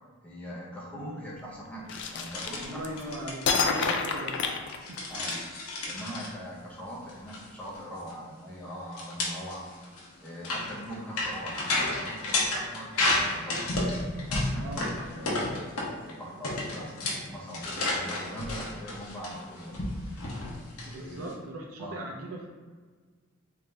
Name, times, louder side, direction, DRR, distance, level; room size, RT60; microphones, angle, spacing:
voice 1, 0.2-2.8 5.1-5.4 5.9-9.7 10.2-13.6 14.2-16.9 17.3-19.7 20.8-21.4 21.8-22.0, equal, 5° left, -6 dB, 0.7 m, -41 dB
sound 1, 1.9-3.0 3.4-5.3, left 5 dB, 50° left, 0.3 m, -29 dB
sound 2, 2.3-2.7 3.0-3.6 4.7-6.3 7.1-7.4 7.7-7.8 8.1-8.2 8.9-16.1 16.4-21.3, left 2 dB, 80° left, 0.8 m, -31 dB
voice 2, 2.6-4.5 4.9-5.0 14.6-14.8 20.9-22.5, right 1 dB, 75° right, -2 dB, 0.5 m, -39 dB
3.7 x 2.7 x 3.2 m, 1.5 s
head